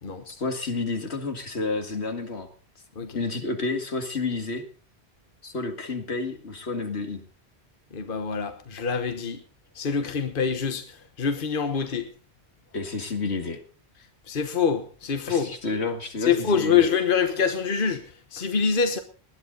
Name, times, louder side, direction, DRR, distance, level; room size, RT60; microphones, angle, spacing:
voice 1, 0.3-2.5 3.1-4.6 5.4-7.2 12.7-13.6 15.3-16.9, left 3 dB, 80° left, 2.3 m, -30 dB
voice 2, 7.9-9.4 9.7-12.1 14.3-15.5 16.2-19.0, left 6 dB, 55° left, 1.4 m, -25 dB
19.5 x 11.0 x 4.0 m
omnidirectional pair, 1.1 m